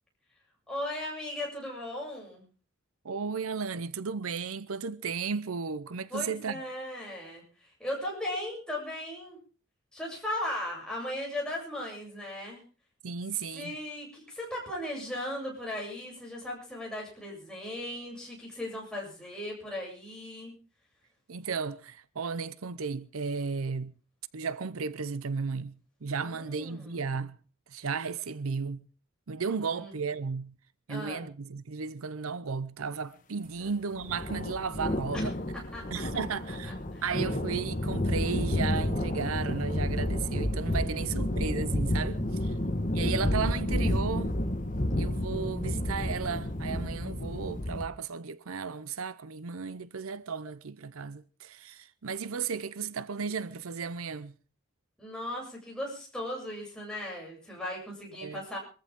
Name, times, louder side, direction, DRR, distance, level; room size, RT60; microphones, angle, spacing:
voice 1, 0.7-2.4 6.1-9.4 9.9-12.6 13.5-20.5 26.2-27.1 29.6-29.9 30.9-31.2 33.6-33.7 35.1-35.3 35.7-35.8 36.1-36.2 36.9-37.0 40.9-41.2 42.3-42.9 55.0-58.6, left 1 dB, 5° left, 7.6 m, -37 dB
voice 2, 3.0-6.6 13.0-13.7 21.3-24.0 24.3-27.4 27.7-28.9 29.3-30.6 30.9-35.4 35.9-42.5 42.9-44.4 45.0-54.3 58.2-58.4, right 5 dB, 85° right, 0.7 m, -34 dB
sound 1, 33.9-47.8, left 1 dB, 35° left, 1.5 m, -30 dB
24.0 x 14.5 x 3.7 m
head